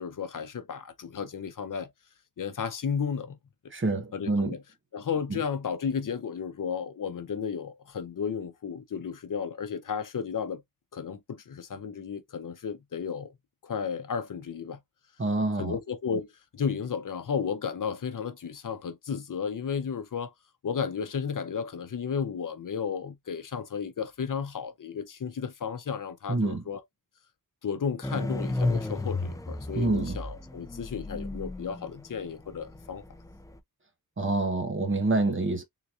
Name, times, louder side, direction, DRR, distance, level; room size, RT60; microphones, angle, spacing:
voice 1, 0.0-1.9 2.4-3.4 4.1-4.6 4.9-10.6 10.9-13.3 13.6-14.8 15.6-20.3 20.6-26.8 27.6-33.0, left 6 dB, 65° left, 0.7 m, -33 dB
voice 2, 3.7-4.5 5.3-5.4 15.2-15.8 26.3-26.6 29.7-30.2 34.2-35.6, right 2 dB, 35° right, 0.9 m, -27 dB
sound 1, 28.0-33.6, left 2 dB, 10° left, 0.4 m, -33 dB
3.8 x 2.8 x 2.4 m
wide cardioid pair, 85°, 35 cm